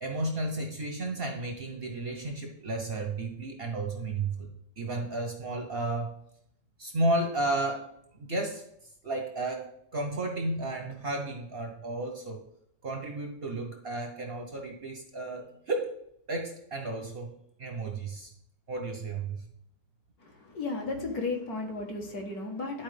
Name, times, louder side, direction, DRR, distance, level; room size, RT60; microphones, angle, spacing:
voice 1, 0.0-4.5 4.8-6.2 6.8-8.6 9.0-12.4 12.8-15.9 16.3-17.3 17.6-18.3 18.7-19.5, right 2 dB, 50° right, 3 dB, 0.7 m, -33 dB
voice 2, 20.2-22.8, left 3 dB, 55° left, 1 dB, 1.6 m, -34 dB
11.5 x 4.3 x 3.3 m, 0.74 s
omnidirectional pair, 2.1 m